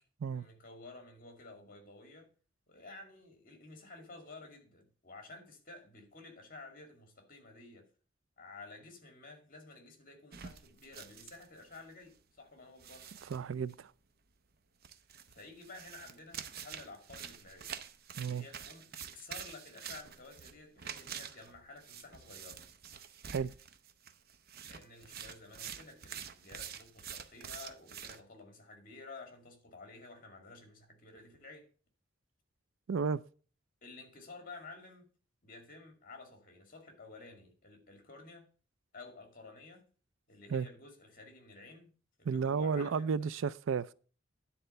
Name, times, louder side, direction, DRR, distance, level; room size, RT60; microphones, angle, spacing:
voice 1, 0.2-2.3 2.7-7.9 8.4-13.1 15.3-17.7 18.2-22.6 24.7-31.7 33.8-35.1 35.4-38.5 38.9-39.9 40.3-41.9 42.2-43.3, left 3 dB, 45° left, 2.1 m, -52 dB
sound 1, 10.3-11.9 12.1-12.2 12.8-13.7 14.8-28.2, right 8 dB, 55° right, 0.7 m, -47 dB
voice 2, 13.3-13.9 18.2-18.5 23.3-23.5 32.9-33.2 40.5-40.7 42.3-43.9, right 6 dB, 90° right, 0.4 m, -33 dB
10.0 x 4.3 x 6.6 m
head